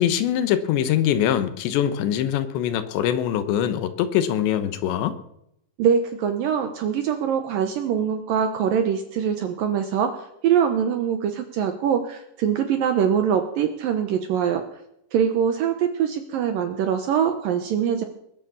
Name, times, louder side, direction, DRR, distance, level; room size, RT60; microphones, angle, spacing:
voice 1, 0.0-5.1, left 10 dB, 75° left, 11 dB, 3.2 m, -23 dB
voice 2, 5.8-10.1 10.4-14.6 15.1-18.0, right 8 dB, 75° right, 7 dB, 2.1 m, -23 dB
21.0 x 8.5 x 7.0 m, 0.77 s
omnidirectional pair, 5.3 m